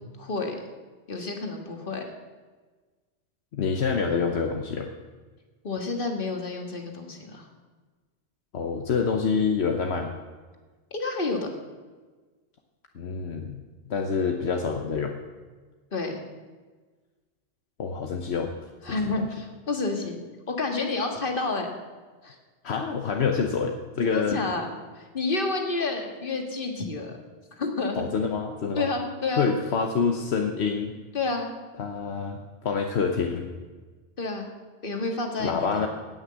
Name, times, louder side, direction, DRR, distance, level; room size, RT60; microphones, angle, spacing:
voice 1, 0.2-0.6 1.1-2.0 5.6-7.5 10.9-11.5 15.9-16.2 18.8-20.2 20.5-21.7 22.2-22.4 24.1-24.7 25.0-27.2 27.6-28.0 28.8-29.5 31.1-31.5 34.2-34.5 34.8-35.9, left 3 dB, 55° left, 3 dB, 1.9 m, -29 dB
voice 2, 3.5-4.9 8.5-10.1 12.9-13.6 13.9-15.1 17.8-18.5 19.1-19.3 22.6-24.4 28.0-28.9 29.4-30.9 31.8-33.5 35.4-35.9, left 5 dB, 75° left, 3 dB, 1.2 m, -27 dB
18.0 x 6.5 x 7.5 m, 1.4 s
omnidirectional pair, 1.1 m